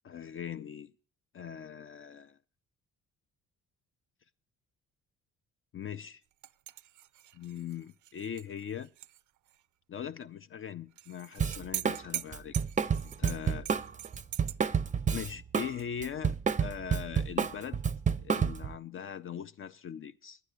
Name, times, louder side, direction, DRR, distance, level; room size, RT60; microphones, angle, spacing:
voice 1, 0.0-0.9 1.3-2.4 5.7-6.2 7.3-8.9 9.9-12.6 13.2-13.7 15.1-17.8 18.2-20.4, left 8 dB, 45° left, 0.5 m, -40 dB
sound 1, 6.4-9.2 9.5-9.6 11.0-14.6, right 14 dB, 80° right, 0.5 m, -42 dB
Drum kit, 11.4-12.0 12.3-15.7 16.0-18.8, right 6 dB, 25° right, 0.5 m, -29 dB
11.5 x 9.3 x 6.6 m
cardioid pair, 90°, 30 cm